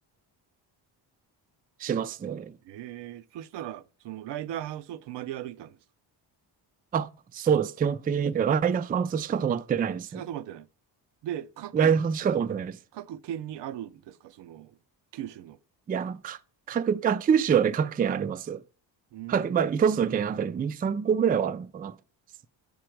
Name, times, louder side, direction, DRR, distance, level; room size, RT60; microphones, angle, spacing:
voice 1, 1.8-2.5 6.9-10.2 11.7-12.8 15.9-16.4 16.7-18.6 19.3-21.9, right 7 dB, 20° right, 0.3 m, -26 dB
voice 2, 2.6-5.8 10.1-10.7 11.2-11.9 12.9-14.8 15.1-15.6 19.1-19.8, right 11 dB, 70° right, 0.6 m, -38 dB
6.7 x 5.1 x 4.5 m
cardioid pair, 95°, 43 cm